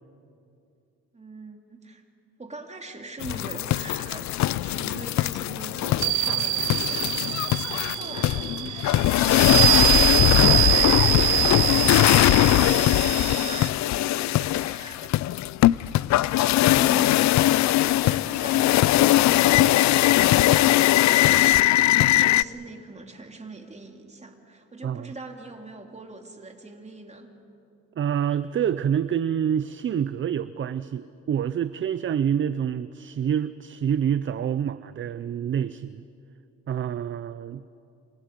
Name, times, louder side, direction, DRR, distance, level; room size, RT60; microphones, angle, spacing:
voice 1, 1.1-2.0 2.4-15.1 16.3-17.2 17.8-21.0 21.6-27.3, right 2 dB, 20° right, 3 dB, 2.8 m, -42 dB
sound 1, 3.2-22.4, left 15 dB, 70° left, 0.4 m, -20 dB
sound 2, 6.0-13.7, right 20 dB, 85° right, 0.5 m, -24 dB
voice 2, 28.0-36.0 36.7-37.6, right 9 dB, 40° right, 15 dB, 0.6 m, -27 dB
28.0 x 26.0 x 5.2 m, 2.6 s
cardioid pair, 90°, 30 cm